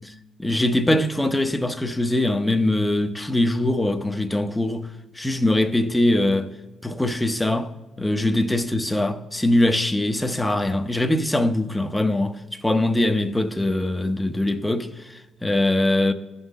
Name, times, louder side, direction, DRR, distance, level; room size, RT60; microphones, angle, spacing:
voice 1, 0.4-4.9 5.2-6.5 6.8-7.7 8.0-16.1, left 1 dB, 10° left, 0.7 m, -22 dB
15.5 x 5.6 x 3.6 m
cardioid pair, 90°, 0 cm